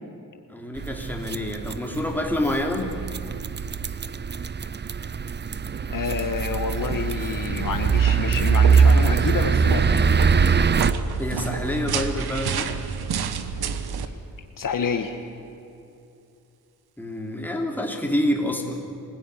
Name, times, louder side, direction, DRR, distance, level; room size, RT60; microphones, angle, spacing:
voice 1, 0.5-2.9 11.2-12.7 17.0-18.8, left 1 dB, 5° left, 1 dB, 3.4 m, -27 dB
sound 1, 0.8-10.9, right 6 dB, 30° right, 0.6 m, -22 dB
voice 2, 5.9-10.1 14.6-15.2, left 6 dB, 60° left, 6 dB, 1.6 m, -28 dB
sound 2, 7.6-14.1, right 6 dB, 80° right, 1.4 m, -29 dB
25.0 x 17.0 x 9.9 m, 2.7 s
cardioid pair, 95°, 37 cm